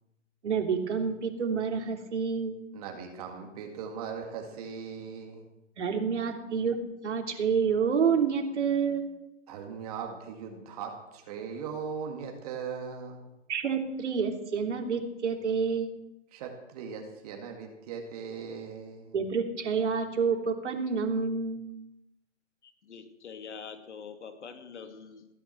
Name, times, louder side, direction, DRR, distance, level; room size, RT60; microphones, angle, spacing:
voice 1, 0.4-2.6 5.8-6.8 7.0-9.1 13.5-15.9 19.1-21.6, right 6 dB, 65° right, 4 dB, 3.2 m, -28 dB
voice 2, 2.7-5.5 6.2-6.3 9.5-13.3 16.3-19.2, right 6 dB, 30° right, 3 dB, 2.1 m, -39 dB
voice 3, 22.6-25.3, left 6 dB, 65° left, 7 dB, 2.5 m, -45 dB
17.0 x 10.0 x 7.8 m, 0.90 s
hypercardioid pair, 160°, 37 cm